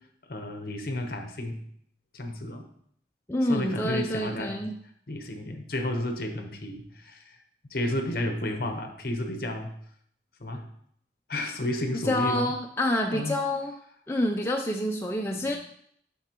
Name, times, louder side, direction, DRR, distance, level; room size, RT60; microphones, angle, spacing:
voice 1, 0.3-1.6 2.1-2.6 3.4-4.6 5.1-7.4 7.7-9.7 10.4-10.6 11.3-12.5 13.1-13.4 15.3-15.6, left 1 dB, 55° left, 5 dB, 0.9 m, -32 dB
voice 2, 3.3-4.7 12.0-13.7 14.1-15.6, left 1 dB, 15° left, 0 dB, 0.4 m, -27 dB
8.0 x 5.8 x 2.9 m, 0.67 s
head